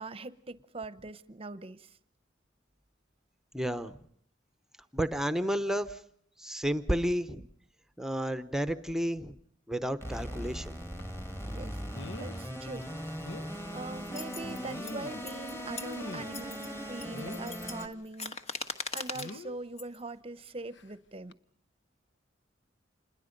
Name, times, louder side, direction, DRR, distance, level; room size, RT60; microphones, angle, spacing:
voice 1, 0.0-1.9 11.5-12.9 13.7-18.4 18.9-21.3, right 3 dB, 30° right, 0.8 m, -42 dB
voice 2, 3.5-4.0 4.9-6.0 6.4-7.4 8.0-9.4 9.7-10.7, equal, 5° right, 0.9 m, -31 dB
sound 1, 10.0-17.9, equal, 15° left, 2.2 m, -39 dB
sound 2, 11.0-11.1 11.9-12.4 12.8-12.9 13.2-13.5 14.4-15.3 15.8-16.5 17.1-17.6 19.1-19.6 20.7-20.9 21.3-21.4, left 2 dB, 65° left, 0.8 m, -44 dB
sound 3, 14.1-15.0 15.3-16.0 16.3-16.7 17.0-19.4 19.8-20.0, left 3 dB, 35° left, 1.4 m, -40 dB
27.5 x 21.5 x 5.3 m
head